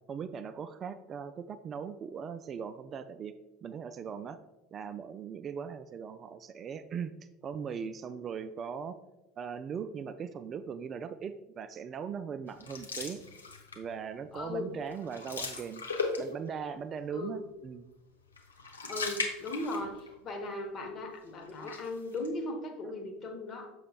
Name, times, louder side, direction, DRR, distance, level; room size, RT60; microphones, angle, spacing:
voice 1, 0.1-3.3 3.6-4.4 4.7-7.1 7.4-9.0 9.4-13.2 13.8-15.8 16.2-17.8, right 7 dB, 35° right, 11 dB, 0.3 m, -39 dB
sound 1, 12.6-13.9 14.3-14.6 14.8-16.6 18.3-20.1 20.5-20.6 21.4-22.3, left 4 dB, 80° left, 0.7 m, -38 dB
voice 2, 14.3-14.7 17.1-17.4 18.8-23.7, left 2 dB, 35° left, 4 dB, 1.1 m, -37 dB
6.6 x 6.2 x 2.4 m, 0.99 s
figure-of-eight pair, 75°, 0 cm